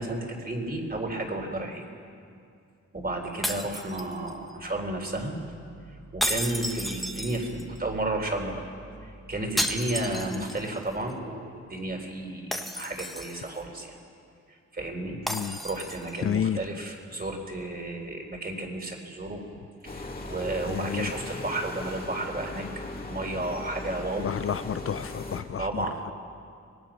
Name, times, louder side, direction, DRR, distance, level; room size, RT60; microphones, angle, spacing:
voice 1, 0.0-1.8 2.9-5.3 6.1-8.7 9.0-14.0 14.7-19.4 19.8-22.7 23.1-24.3 25.6-26.0, right 2 dB, 30° right, 2 dB, 3.7 m, -32 dB
sound 1, 3.4-4.5 6.2-7.8 9.6-10.8 11.1-11.2 12.5-13.6 15.3-16.2, equal, ahead, 1.3 m, -32 dB
voice 2, 15.3-15.6 16.2-16.6 20.7-21.1 24.2-26.1, left 9 dB, 50° left, 13 dB, 0.5 m, -31 dB
sound 2, 19.8-25.4, left 2 dB, 30° left, 2.4 m, -38 dB
25.5 x 19.5 x 6.0 m, 2.4 s
wide cardioid pair, 100°, 30 cm